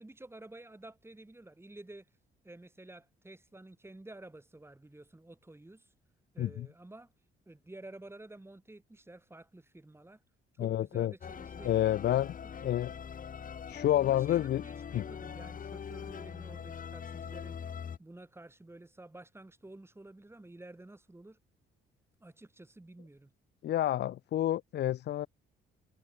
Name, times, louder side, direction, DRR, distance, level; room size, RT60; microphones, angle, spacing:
voice 1, 0.0-2.1 2.4-5.9 6.3-7.1 7.5-10.2 10.5-12.3 12.8-12.9 14.0-17.6 18.0-21.4 22.2-23.3, right 2 dB, 10° right, 6.9 m, -51 dB
voice 2, 10.6-11.1 11.6-12.3 12.6-12.9 13.7-14.6 14.9-15.0 23.6-25.3, left 12 dB, 60° left, 0.5 m, -29 dB
sound 1, 11.2-18.0, left 7 dB, 45° left, 1.5 m, -42 dB
cardioid pair, 90°, 20 cm